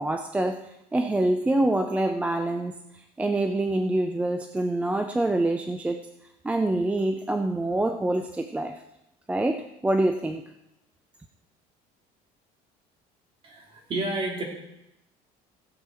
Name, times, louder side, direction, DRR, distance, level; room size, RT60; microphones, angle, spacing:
voice 1, 0.0-6.0 6.4-8.8 9.3-10.4, right 2 dB, 10° right, 6 dB, 0.5 m, -26 dB
voice 2, 13.4-14.4, right 2 dB, 35° right, 0 dB, 2.8 m, -30 dB
16.0 x 7.9 x 4.4 m, 0.86 s
cardioid pair, 155°, 16 cm